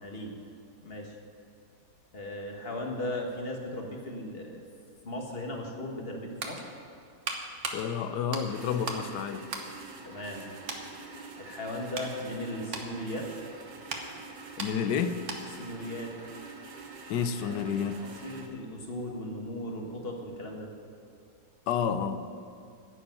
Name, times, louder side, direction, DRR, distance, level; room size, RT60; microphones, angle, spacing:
voice 1, 0.0-0.3 0.8-1.2 2.1-4.6 5.0-6.6 10.0-10.4 11.4-13.3 15.6-16.1 17.4-17.6 18.0-20.7, left 1 dB, 35° left, 1 dB, 1.6 m, -37 dB
sound 1, 6.3-9.1 9.4-10.4 10.7-10.9 11.5-15.7 16.0-16.2, right 3 dB, 50° right, 1.4 m, -39 dB
voice 2, 7.7-9.4 14.6-15.2 17.1-18.0 21.7-22.2, left 7 dB, 85° left, 10 dB, 1.3 m, -30 dB
sound 2, 8.4-18.5, right 3 dB, 90° right, 1.8 m, -46 dB
11.0 x 7.0 x 9.3 m, 2.6 s
omnidirectional pair, 1.8 m